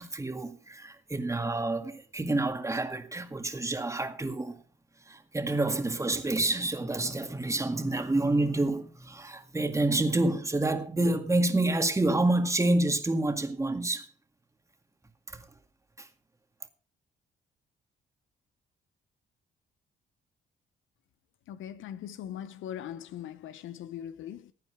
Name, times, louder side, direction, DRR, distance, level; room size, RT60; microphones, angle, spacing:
voice 1, 0.0-4.6 5.1-14.1 15.3-15.4 16.0-16.1, right 2 dB, 15° right, 2.0 m, -28 dB
voice 2, 21.5-24.5, left 10 dB, 80° left, 0.9 m, -40 dB
16.0 x 9.3 x 4.8 m
cardioid pair, 90°, 20 cm